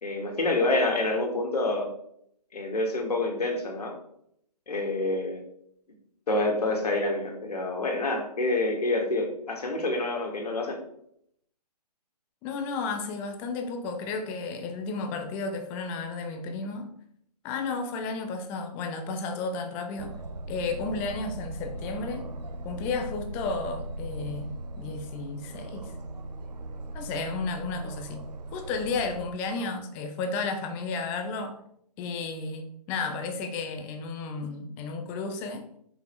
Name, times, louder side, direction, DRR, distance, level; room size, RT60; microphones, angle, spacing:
voice 1, 0.0-1.9 2.5-4.0 4.7-5.4 6.3-10.8, left 2 dB, 70° left, 1 dB, 1.9 m, -27 dB
voice 2, 12.4-16.9 17.4-20.1 20.5-22.3 22.6-25.9 26.9-28.3 28.5-31.6 32.0-35.6, left 4 dB, 10° left, 6 dB, 0.3 m, -33 dB
Aircraft, 20.0-29.3, right 2 dB, 80° right, 1.0 m, -39 dB
5.4 x 5.1 x 4.5 m, 0.71 s
figure-of-eight pair, 140°, 21 cm